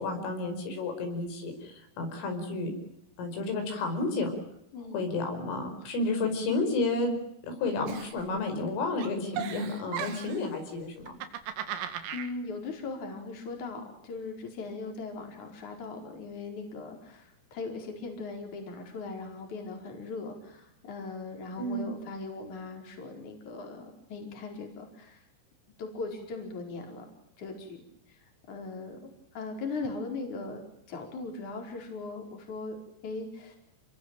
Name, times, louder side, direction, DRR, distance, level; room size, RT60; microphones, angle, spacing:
voice 1, 0.0-2.7 3.2-4.3 4.9-7.2 7.5-11.2 21.6-21.9, left 3 dB, 75° left, 5 dB, 7.7 m, -31 dB
voice 2, 4.7-5.1 12.1-25.2 25.8-27.1 27.4-27.8 28.1-32.8 33.0-33.6, left 3 dB, 40° left, 3 dB, 5.7 m, -39 dB
Giggle, 7.9-8.7 9.0-10.5 11.0-12.3, right 9 dB, 80° right, 4.6 m, -37 dB
29.0 x 21.0 x 9.1 m, 0.75 s
omnidirectional pair, 5.8 m